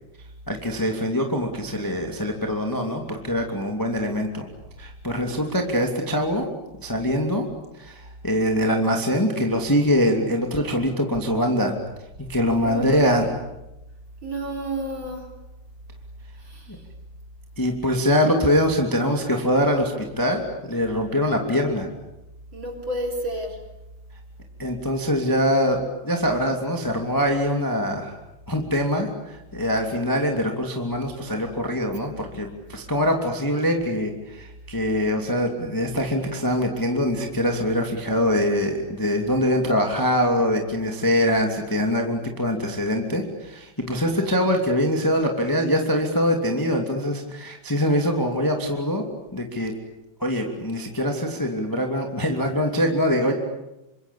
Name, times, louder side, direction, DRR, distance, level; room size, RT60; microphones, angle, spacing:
voice 1, 0.5-4.5 4.8-6.5 6.8-7.4 7.8-11.8 12.3-13.3 17.6-21.9 24.6-28.1 28.5-49.0 49.3-49.7 50.2-53.3, equal, 5° left, 2 dB, 2.0 m, -23 dB
voice 2, 12.6-13.3 14.2-15.3 16.3-16.8 22.5-23.6, right 1 dB, 30° right, 3 dB, 4.4 m, -31 dB
28.0 x 25.0 x 8.5 m, 0.95 s
omnidirectional pair, 4.5 m